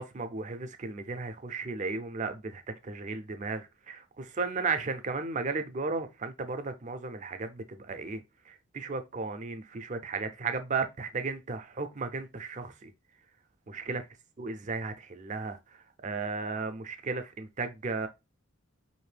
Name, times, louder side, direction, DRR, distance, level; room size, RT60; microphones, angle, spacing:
voice 1, 0.0-12.9 13.7-14.0 14.4-18.1, right 4 dB, 35° right, 0.5 m, -35 dB
5.0 x 2.6 x 3.2 m
head